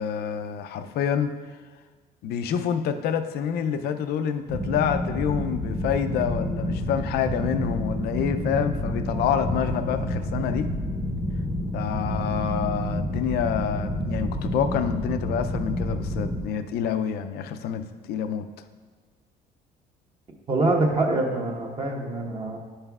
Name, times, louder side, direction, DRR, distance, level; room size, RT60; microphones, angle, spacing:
voice 1, 0.0-1.3 2.2-10.7 11.7-18.5, left 8 dB, 70° left, 8 dB, 0.5 m, -27 dB
sound 1, 4.5-16.4, equal, 5° left, 0.7 m, -29 dB
voice 2, 20.5-22.6, right 2 dB, 30° right, 0 dB, 1.0 m, -24 dB
10.0 x 5.5 x 2.4 m, 1.4 s
cardioid pair, 110°, 17 cm